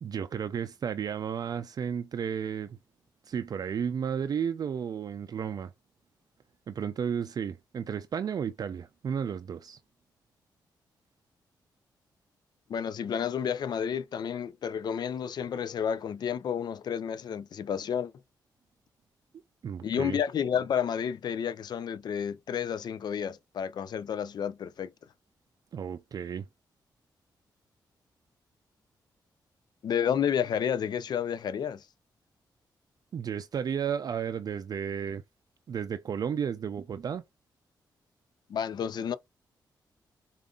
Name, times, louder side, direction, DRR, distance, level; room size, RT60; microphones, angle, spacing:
voice 1, 0.0-2.8 3.3-5.7 6.7-9.8 19.6-20.2 25.7-26.4 33.1-35.2 35.7-37.2, right 7 dB, 55° right, 0.4 m, -33 dB
voice 2, 12.7-18.1 19.8-24.9 29.8-31.8 38.5-39.1, left 8 dB, 65° left, 0.4 m, -31 dB
4.9 x 2.5 x 2.4 m
cardioid pair, 80°, 8 cm